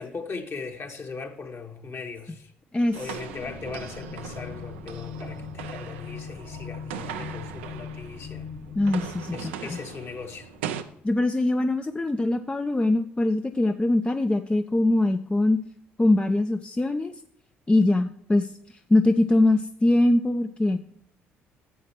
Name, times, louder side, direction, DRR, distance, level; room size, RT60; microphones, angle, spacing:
voice 1, 0.0-2.5 2.9-8.5 9.3-10.5, left 4 dB, 45° left, 1.5 m, -38 dB
voice 2, 2.7-3.2 8.8-9.8 11.0-15.6 16.0-17.1 17.7-18.5 18.9-20.8, left 2 dB, 15° left, 0.5 m, -22 dB
sound 1, 2.9-11.1, left 6 dB, 70° left, 2.7 m, -41 dB
sound 2, 2.9-8.4 8.7-10.8, right 9 dB, 85° right, 0.5 m, -39 dB
12.0 x 7.3 x 3.0 m
hypercardioid pair, 50°, 6 cm